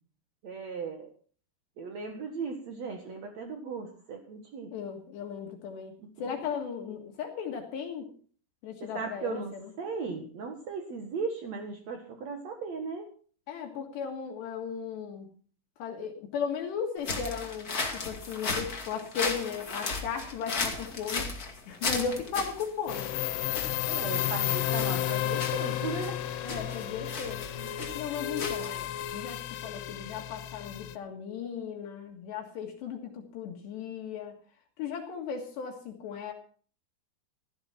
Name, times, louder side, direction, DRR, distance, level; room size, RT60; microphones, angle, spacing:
voice 1, 0.4-1.1 1.8-4.7 6.0-6.3 8.8-13.1 23.9-26.2 27.6-27.8 28.3-28.4, right 5 dB, 80° right, 5 dB, 1.5 m, -37 dB
voice 2, 4.7-8.1 8.6-9.6 13.5-15.3 15.8-23.1 26.4-27.4 28.0-34.4 34.8-36.3, left 6 dB, 65° left, 3 dB, 3.6 m, -36 dB
sound 1, 17.0-29.0, left 3 dB, 40° left, 1.2 m, -36 dB
sound 2, 22.9-31.0, left 13 dB, 80° left, 3.5 m, -32 dB
16.0 x 14.0 x 4.3 m, 0.43 s
omnidirectional pair, 5.8 m